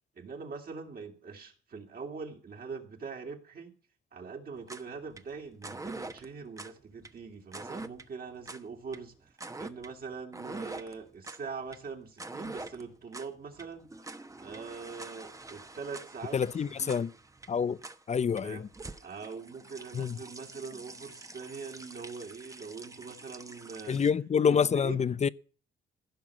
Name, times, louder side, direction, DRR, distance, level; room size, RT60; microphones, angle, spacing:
voice 1, 0.2-3.8 4.1-13.9 14.4-17.0 18.4-18.6 19.0-24.0 24.5-25.1, right 5 dB, 50° right, 2.7 m, -43 dB
sound 1, 4.6-24.1, right 2 dB, 15° right, 1.1 m, -45 dB
voice 2, 16.3-17.1 17.5-17.8 18.1-18.6 19.9-20.2 23.9-25.3, left 6 dB, 35° left, 0.6 m, -27 dB
15.5 x 6.0 x 8.5 m
cardioid pair, 90°, 20 cm